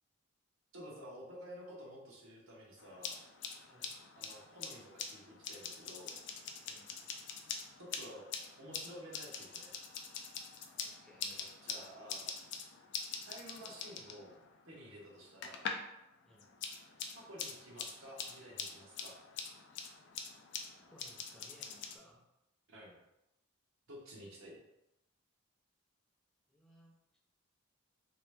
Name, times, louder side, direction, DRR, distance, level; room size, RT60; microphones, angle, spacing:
voice 1, 0.7-3.2 4.2-6.2 7.8-8.3 8.6-9.8 11.6-12.3 13.2-14.3 14.7-15.6 17.1-19.2 22.7-23.0 23.9-24.6, equal, 80° right, -3 dB, 1.1 m, -52 dB
sound 1, 2.8-15.9 16.2-22.0, left 6 dB, 55° left, 0.4 m, -45 dB
voice 2, 3.6-4.0 6.6-6.9 10.8-11.7 16.2-16.5 20.7-22.3 26.5-26.9, equal, 5° left, -5 dB, 0.6 m, -62 dB
3.1 x 2.9 x 3.3 m, 0.88 s
head